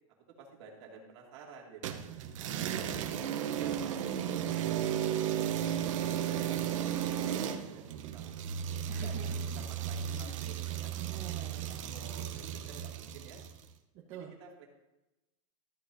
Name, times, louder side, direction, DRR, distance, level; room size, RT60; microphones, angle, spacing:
voice 1, 0.3-2.3 3.1-3.2 6.0-8.2 8.9-11.2 11.7-13.4 14.1-14.7, right 5 dB, 50° right, -1 dB, 2.5 m, -53 dB
sound 1, 1.8-13.6, right 9 dB, 65° right, 0.9 m, -34 dB
voice 2, 2.3-3.9 8.9-9.2 9.5-9.6 10.1-10.4 10.9-11.8 13.9-14.3, right 8 dB, 35° right, -4 dB, 1.2 m, -47 dB
13.5 x 8.4 x 2.7 m, 0.97 s
supercardioid pair, 175°, 18 cm